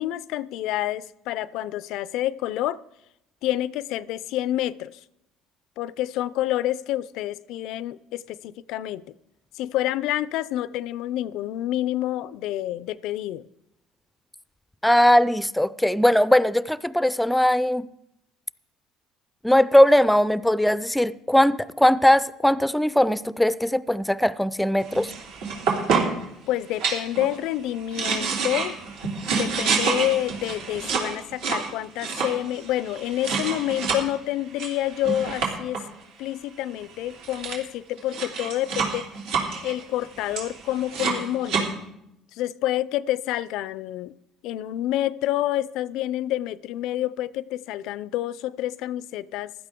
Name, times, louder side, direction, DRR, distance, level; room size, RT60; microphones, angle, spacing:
voice 1, 0.0-2.8 3.4-4.9 5.8-9.0 9.6-13.4 26.5-28.8 29.3-35.8 36.2-39.0 39.6-41.7 42.4-44.1 44.4-49.5, left 13 dB, 75° left, 0.4 m, -28 dB
voice 2, 14.8-17.9 19.4-25.1, left 1 dB, 5° left, 0.5 m, -19 dB
sound 1, 24.9-26.3 26.8-27.4 27.7-34.0 34.6-35.8 36.8-36.9 37.1-37.6 38.0-41.6, right 5 dB, 75° right, 3.2 m, -28 dB
15.5 x 12.0 x 3.6 m
supercardioid pair, 90°, 0 cm